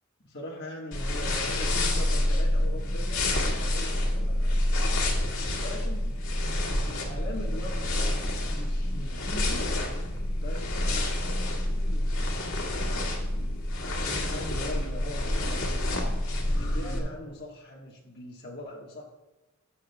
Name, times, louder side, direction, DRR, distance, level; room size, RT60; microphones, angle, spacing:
voice 1, 0.2-5.1 5.6-6.2 6.6-9.7 10.4-12.5 13.3-13.7 14.0-15.8 16.6-19.0, left 1 dB, 50° left, -4 dB, 1.4 m, -41 dB
sound 1, 0.9-17.0, left 1 dB, 75° left, 1.9 m, -28 dB
20.0 x 7.4 x 2.2 m, 1.1 s
head